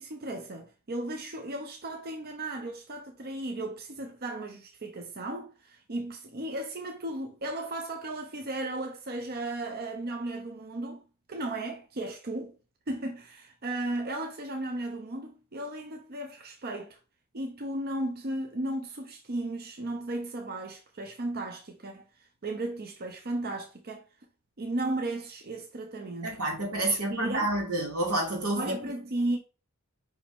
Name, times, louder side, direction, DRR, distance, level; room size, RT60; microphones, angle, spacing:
voice 1, 0.0-11.0 11.3-12.5 12.9-17.0 17.3-22.0 22.4-24.0 24.6-26.4 26.9-27.5 28.6-29.4, right 1 dB, 45° right, 0.7 m, -35 dB
voice 2, 26.2-28.7, right 1 dB, 90° right, 3.0 m, -29 dB
5.5 x 5.2 x 3.5 m
head